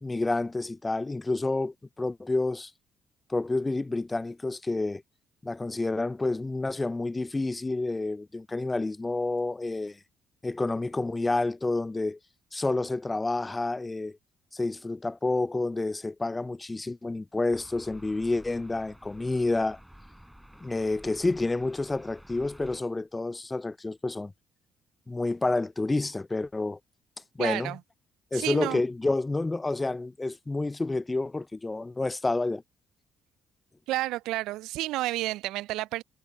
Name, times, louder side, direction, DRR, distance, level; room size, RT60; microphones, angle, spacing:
voice 1, 0.0-2.7 3.3-5.0 5.4-10.0 10.4-12.2 12.5-14.2 14.5-19.8 20.6-24.3 25.1-26.8 27.4-27.8 28.3-32.6, left 2 dB, 20° left, 0.5 m, -29 dB
sound 1, 17.5-22.8, equal, 5° right, 5.3 m, -51 dB
voice 2, 27.4-27.8 28.3-28.8 33.9-36.0, right 17 dB, 75° right, 0.3 m, -30 dB
hypercardioid pair, 50°, 0 cm